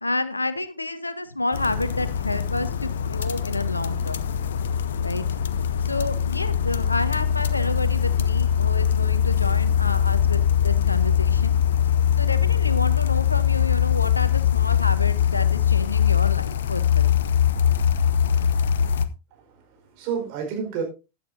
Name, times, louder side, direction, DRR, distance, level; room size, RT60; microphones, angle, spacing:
voice 1, 0.0-4.2 5.0-5.2 5.8-11.6 12.2-17.2, left 2 dB, 80° left, 14 dB, 1.0 m, -29 dB
sound 1, 1.5-19.1, left 9 dB, 60° left, 0.7 m, -22 dB
voice 2, 19.3-20.8, right 6 dB, 45° right, 2 dB, 4.8 m, -31 dB
15.5 x 10.5 x 2.7 m, 0.29 s
figure-of-eight pair, 90°, 0 cm